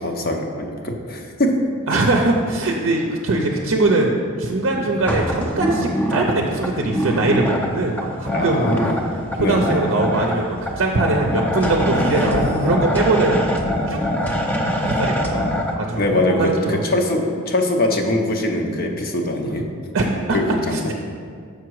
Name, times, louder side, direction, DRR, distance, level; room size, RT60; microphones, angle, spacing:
voice 1, 0.0-1.7 4.8-4.9 8.3-9.1 9.4-9.7 11.9-12.7 15.9-19.6 20.3-20.8, left 1 dB, 45° left, 3 dB, 0.7 m, -22 dB
voice 2, 1.9-8.8 9.4-13.5 13.9-14.0 14.8-15.5 15.8-16.8 19.9-20.4 20.7-20.9, right 2 dB, 60° right, 0 dB, 0.6 m, -21 dB
sound 1, 5.0-15.7, equal, 10° left, 0.5 m, -24 dB
6.5 x 5.9 x 4.7 m, 2.2 s
head